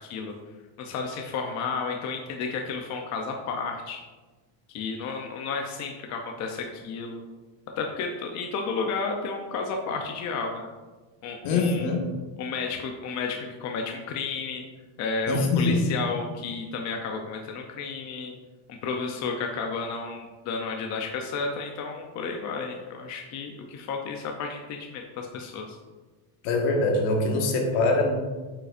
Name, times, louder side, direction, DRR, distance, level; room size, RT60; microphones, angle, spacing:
voice 1, 0.0-0.3 0.8-4.0 4.7-7.2 7.8-10.7 11.2-11.9 12.4-14.6 15.0-18.3 18.7-25.8, left 4 dB, 35° left, 2 dB, 0.5 m, -32 dB
voice 2, 11.4-12.0 15.3-15.8 26.4-28.1, left 2 dB, 65° left, 1 dB, 1.5 m, -23 dB
8.5 x 5.4 x 2.5 m, 1.3 s
cardioid pair, 160°, 50 cm